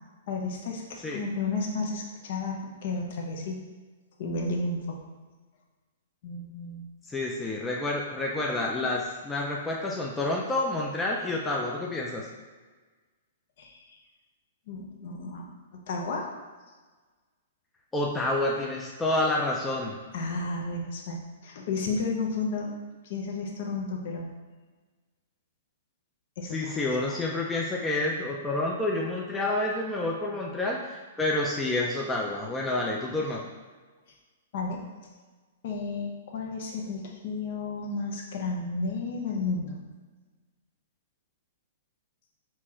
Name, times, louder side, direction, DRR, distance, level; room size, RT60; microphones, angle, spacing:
voice 1, 0.3-3.6 4.2-5.0 6.2-6.8 13.6-14.0 14.7-15.5 15.9-16.3 20.1-22.7 23.0-24.3 26.4-27.2 34.5-34.8 35.6-39.8, left 3 dB, 55° left, 0 dB, 0.8 m, -32 dB
voice 2, 7.1-12.3 17.9-20.0 26.5-33.4, left 2 dB, 10° left, -3 dB, 0.5 m, -29 dB
4.5 x 2.5 x 4.3 m, 1.3 s
hypercardioid pair, 135°, 0 cm